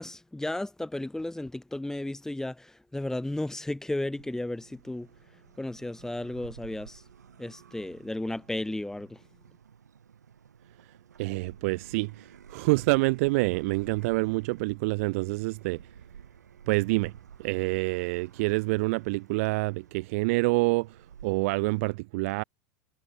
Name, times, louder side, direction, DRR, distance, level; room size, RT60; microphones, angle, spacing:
voice 1, 0.0-5.1 5.6-7.0 7.4-9.2, left 1 dB, 5° left, 1.9 m, -34 dB
sound 1, 4.2-21.8, right 7 dB, 75° right, 1.4 m, -52 dB
voice 2, 11.2-15.8 16.7-17.1 17.4-21.0 21.2-22.4, right 24 dB, 55° right, 0.4 m, -27 dB
figure-of-eight pair, 80°, 9 cm